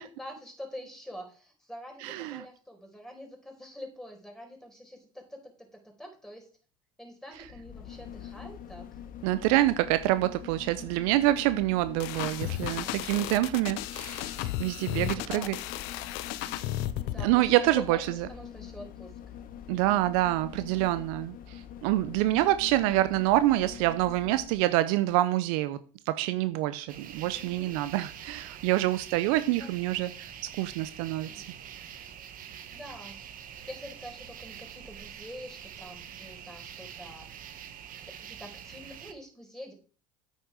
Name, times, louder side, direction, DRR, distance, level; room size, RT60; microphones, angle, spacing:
voice 1, 0.0-6.5 7.0-9.0 12.3-13.0 15.0-15.6 17.1-17.4 17.8-19.1 27.3-27.8 29.6-29.7 32.7-33.2 33.7-37.3 38.0-39.7, equal, 5° left, 4.7 m, -45 dB
voice 2, 2.0-2.4 9.2-15.6 17.2-18.3 19.7-25.8 26.1-30.1 30.6-31.4, right 15 dB, 70° right, 0.7 m, -26 dB
sound 1, 7.3-24.7 25.1-25.2, left 9 dB, 50° left, 1.2 m, -45 dB
sound 2, 12.0-17.3, left 14 dB, 70° left, 0.8 m, -34 dB
sound 3, 26.9-39.1, right 9 dB, 50° right, 1.4 m, -45 dB
8.9 x 6.6 x 4.8 m
hypercardioid pair, 70°, 18 cm